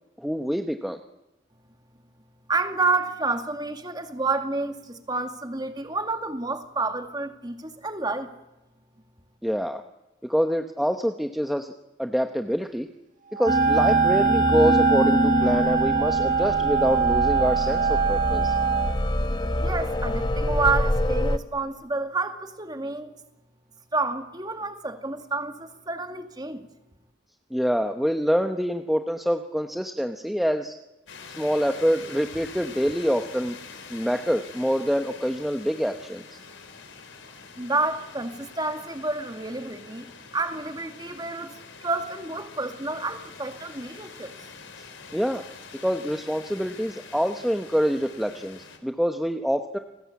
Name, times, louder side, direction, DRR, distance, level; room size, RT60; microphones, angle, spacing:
voice 1, 0.2-1.0 9.4-9.8 10.2-11.7 12.0-12.9 13.3-18.5 27.5-30.8 31.4-33.6 33.9-36.2 45.1-45.4 45.8-49.8, equal, ahead, 5 dB, 0.9 m, -26 dB
voice 2, 2.5-8.3 19.6-23.1 23.9-26.7 37.6-40.1 40.3-41.5 41.8-44.3, right 3 dB, 20° right, 6 dB, 2.2 m, -29 dB
Wind instrument woodwind instrument, 13.3-19.0, right 6 dB, 40° right, 1.9 m, -23 dB
sound 1, 13.5-21.4, left 1 dB, 20° left, 1.0 m, -25 dB
sound 2, 31.1-48.8, left 5 dB, 70° left, 4.3 m, -45 dB
29.5 x 20.5 x 8.5 m, 0.98 s
head